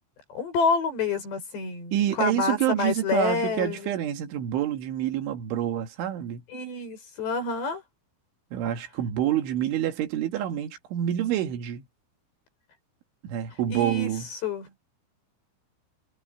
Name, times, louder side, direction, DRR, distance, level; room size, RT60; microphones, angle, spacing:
voice 1, 0.4-4.0 6.5-7.8 13.7-14.7, left 4 dB, 60° left, 8.9 m, -28 dB
voice 2, 1.9-6.4 8.5-11.9 13.2-14.3, right 11 dB, 75° right, 4.2 m, -27 dB
omnidirectional pair, 5.6 m